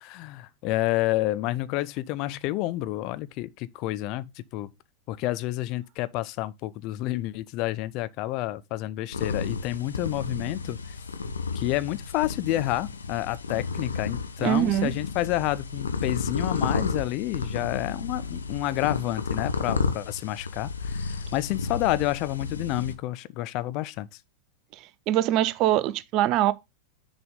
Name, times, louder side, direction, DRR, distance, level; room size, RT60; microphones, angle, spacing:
voice 1, 0.0-4.2 4.5-4.7 5.1-11.0 11.5-24.1, left 16 dB, 40° left, 0.4 m, -29 dB
sound 1, 9.1-22.9, left 4 dB, 75° left, 0.8 m, -32 dB
voice 2, 14.4-14.9 24.8-26.5, right 13 dB, 40° right, 0.4 m, -23 dB
6.6 x 4.1 x 5.0 m
figure-of-eight pair, 90°, 0 cm